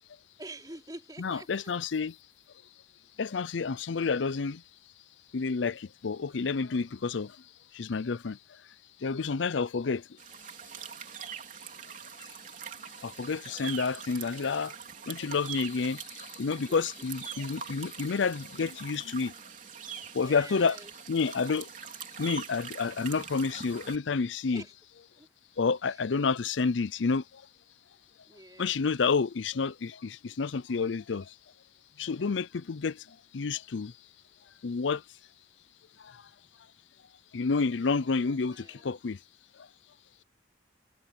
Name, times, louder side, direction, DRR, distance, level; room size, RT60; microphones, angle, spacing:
voice 1, 0.4-1.6 13.3-13.8 16.7-17.1 20.1-20.9 24.5-24.7 25.2-25.3 25.8-26.0 28.2-29.1 37.8-38.9, right 2 dB, 20° right, 4.0 m, -48 dB
voice 2, 1.2-2.1 3.2-4.6 5.3-7.3 7.8-8.4 9.0-10.0 13.0-14.7 15.1-16.0 16.4-19.3 20.1-20.8 21.1-21.7 22.2-24.6 25.6-27.2 28.6-31.2 32.0-33.0 33.3-33.9 34.6-35.0 37.3-39.2, left 4 dB, 85° left, 0.6 m, -29 dB
sound 1, 10.2-23.9, right 7 dB, 45° right, 3.5 m, -43 dB
head